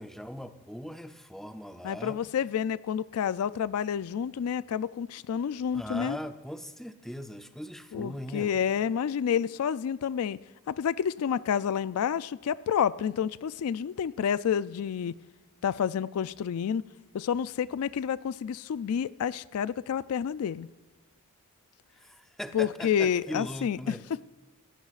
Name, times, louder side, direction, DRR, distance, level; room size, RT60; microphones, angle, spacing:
voice 1, 0.0-2.2 5.7-8.5 22.0-24.0, equal, ahead, 0.5 m, -40 dB
voice 2, 1.8-6.2 7.9-10.4 10.7-15.2 15.6-16.8 17.1-20.7 22.5-24.0, left 8 dB, 75° left, 0.3 m, -29 dB
18.0 x 15.5 x 2.4 m
head